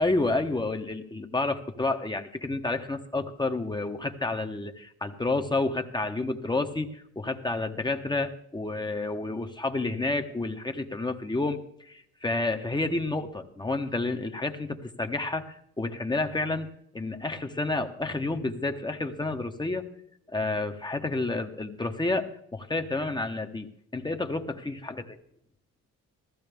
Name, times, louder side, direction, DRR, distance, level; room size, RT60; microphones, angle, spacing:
voice 1, 0.0-16.7 16.9-19.8 20.3-25.1, left 2 dB, 15° left, 5 dB, 1.0 m, -30 dB
15.0 x 14.0 x 3.5 m, 0.71 s
cardioid pair, 90°, 30 cm